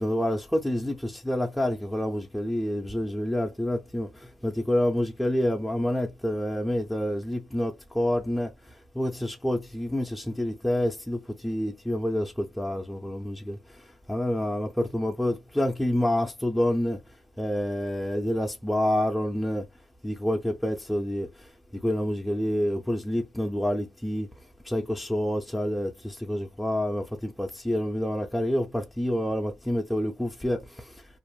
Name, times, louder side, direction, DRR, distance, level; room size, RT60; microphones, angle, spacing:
voice 1, 0.0-4.1 4.4-8.5 9.0-13.6 14.1-17.0 17.4-19.6 20.0-21.3 21.8-24.3 24.7-30.6, left 1 dB, 5° left, 0.5 m, -28 dB
2.5 x 2.0 x 3.0 m
cardioid pair, 90°, 0 cm